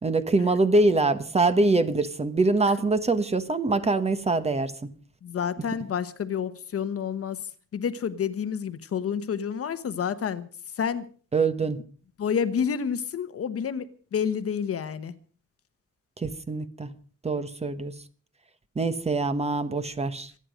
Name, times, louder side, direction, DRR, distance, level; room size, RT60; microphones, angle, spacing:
voice 1, 0.0-4.9 11.3-11.8 16.2-16.9 17.2-17.9 18.8-20.3, right 3 dB, 20° right, 1.1 m, -24 dB
voice 2, 5.2-7.4 7.7-10.5 10.8-11.1 12.2-15.1, left 7 dB, 50° left, 1.1 m, -29 dB
27.0 x 9.9 x 5.1 m
wide cardioid pair, 170°, 30 cm